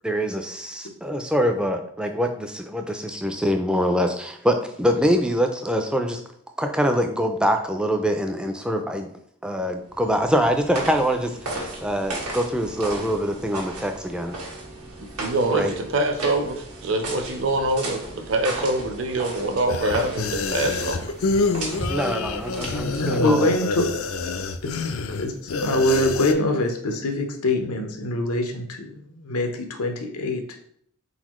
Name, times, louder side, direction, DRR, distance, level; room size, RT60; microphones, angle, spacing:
voice 1, 0.0-6.2 6.6-9.1 9.4-11.5 11.8-14.4 15.5-15.7 21.9-23.5, equal, 5° right, 5 dB, 0.3 m, -24 dB
sound 1, 9.9-23.2, right 2 dB, 90° right, 1.5 m, -35 dB
voice 2, 15.2-21.0, right 2 dB, 60° right, 6 dB, 0.7 m, -24 dB
sound 2, 19.7-26.3, left 3 dB, 75° left, 0.4 m, -27 dB
voice 3, 23.0-23.9 24.6-30.4, left 1 dB, 90° left, 5 dB, 0.8 m, -24 dB
4.3 x 4.0 x 3.0 m, 0.66 s
head